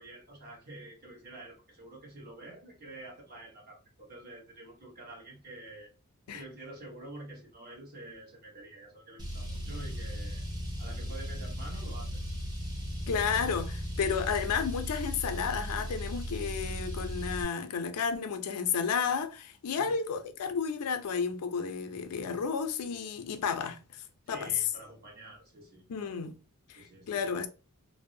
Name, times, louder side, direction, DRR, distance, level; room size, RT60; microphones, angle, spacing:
voice 1, 0.0-5.9 6.3-10.4 10.8-12.2 19.8-20.0 24.3-26.2 26.7-27.4, right 2 dB, 45° right, 1.1 m, -48 dB
Car, 9.2-17.4, equal, 20° right, 0.5 m, -37 dB
voice 2, 13.1-24.5 25.9-26.4 26.7-27.5, left 6 dB, 80° left, 0.4 m, -32 dB
2.6 x 2.0 x 2.6 m
head